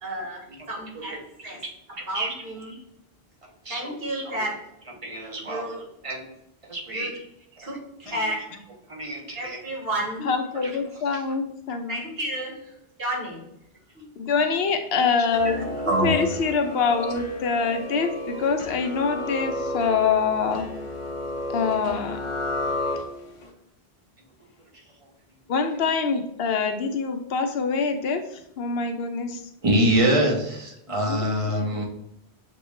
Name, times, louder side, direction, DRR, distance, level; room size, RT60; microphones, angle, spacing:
voice 1, 0.0-1.2 1.4-1.6 2.1-2.8 3.7-4.6 5.4-5.8 6.9-7.1 7.6-8.5 9.3-10.3 11.9-12.6 13.0-13.4 13.9-14.0, right 1 dB, 65° right, -1 dB, 1.5 m, -32 dB
voice 2, 2.0-2.3 3.6-3.9 4.3-4.4 5.0-5.7 6.0-6.3 6.7-7.1 7.6-7.7 8.1-8.2 8.9-9.6 15.9-16.1 29.6-31.8, right 1 dB, 35° right, -1 dB, 0.9 m, -25 dB
voice 3, 10.2-12.0 14.2-15.8 16.0-20.6 21.5-22.2 25.5-29.4 31.1-31.8, left 5 dB, 75° left, 6 dB, 0.8 m, -25 dB
sound 1, 15.2-23.5, left 1 dB, 40° left, 0.5 m, -32 dB
6.7 x 2.3 x 3.1 m, 0.80 s
omnidirectional pair, 1.0 m